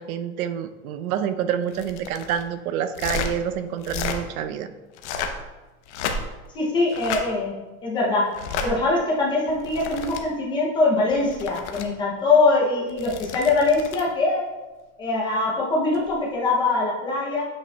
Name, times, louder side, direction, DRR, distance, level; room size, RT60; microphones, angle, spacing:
voice 1, 0.0-4.7, right 9 dB, 80° right, 9 dB, 0.7 m, -28 dB
sound 1, 1.7-2.4 2.9-3.3 3.8-4.2 4.9-5.4 5.9-6.5 6.9-7.2 8.3-8.7 9.5-10.2 11.1-11.8 12.9-14.1 15.9-16.1, left 5 dB, 55° left, 0.8 m, -31 dB
voice 2, 6.5-7.5 7.8-8.2 8.6-14.4 15.0-17.5, left 3 dB, 10° left, -4 dB, 0.5 m, -22 dB
8.4 x 5.1 x 2.2 m, 1.1 s
supercardioid pair, 170°, 42 cm